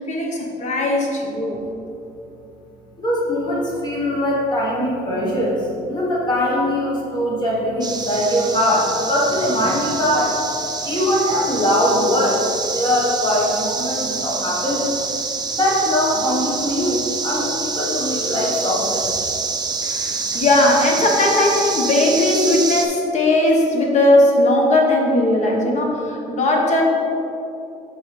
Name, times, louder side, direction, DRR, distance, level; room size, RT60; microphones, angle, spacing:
voice 1, 0.0-1.6 19.8-26.8, left 1 dB, 45° left, 0 dB, 1.2 m, -18 dB
voice 2, 3.0-10.4 10.8-12.5 12.7-14.9 15.5-19.1, equal, 25° left, -5 dB, 1.3 m, -21 dB
sound 1, 7.8-22.9, right 4 dB, 25° right, 0.6 m, -26 dB
10.0 x 3.9 x 3.3 m, 2.8 s
cardioid pair, 110°, 17 cm